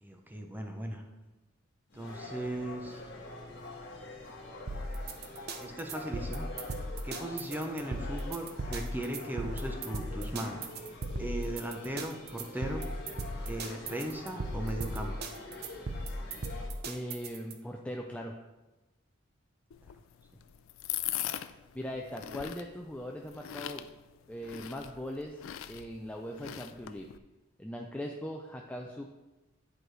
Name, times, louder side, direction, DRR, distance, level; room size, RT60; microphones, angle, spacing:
voice 1, 0.0-1.0 1.9-3.0 5.6-6.4 7.0-10.7 11.2-12.9 13.5-15.1, right 1 dB, 10° right, 3 dB, 0.8 m, -37 dB
sound 1, 1.9-16.7, left 1 dB, 60° left, 1.5 m, -45 dB
sound 2, 4.7-17.5, right 1 dB, 55° right, 0.7 m, -37 dB
voice 2, 16.8-18.3 21.7-23.9 24.3-25.4 25.7-27.1 27.6-29.1, equal, 5° left, 1 dB, 0.4 m, -40 dB
sound 3, 19.7-27.2, left 12 dB, 85° left, 0.4 m, -41 dB
10.0 x 4.6 x 3.2 m, 1.1 s
head